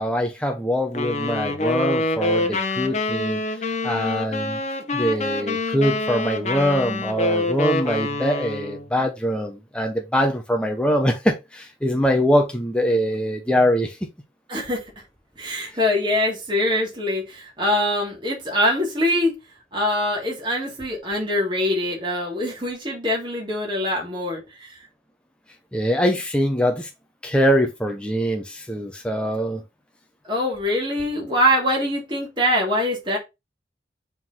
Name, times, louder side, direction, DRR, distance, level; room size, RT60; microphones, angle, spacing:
voice 1, 0.0-4.6 4.9-14.0 25.7-26.9 27.2-29.6, equal, 5° left, 0.8 m, -23 dB
sound 1, 0.9-8.9, left 2 dB, 40° left, 1.0 m, -26 dB
voice 2, 14.5-14.8 15.4-19.4 19.7-24.8 30.2-33.2, left 1 dB, 25° right, 2.4 m, -23 dB
5.1 x 3.8 x 5.6 m
head